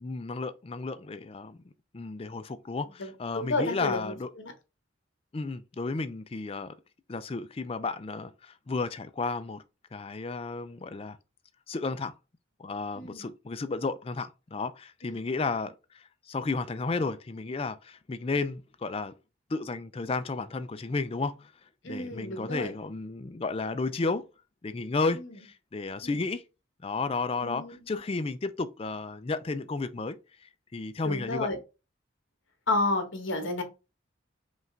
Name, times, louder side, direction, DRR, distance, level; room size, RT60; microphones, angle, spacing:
voice 1, 0.0-1.6 1.9-4.3 5.3-6.7 7.1-9.6 9.9-11.2 11.7-12.2 12.6-19.1 19.5-21.5 21.8-24.3 24.6-26.4 26.8-31.5, left 3 dB, 30° left, 0.4 m, -33 dB
voice 2, 3.0-4.5 12.9-13.3 15.0-15.2 21.8-22.7 26.0-26.2 27.4-27.8 31.0-31.6 32.7-33.6, left 2 dB, 70° left, 1.2 m, -31 dB
5.3 x 2.4 x 3.3 m
head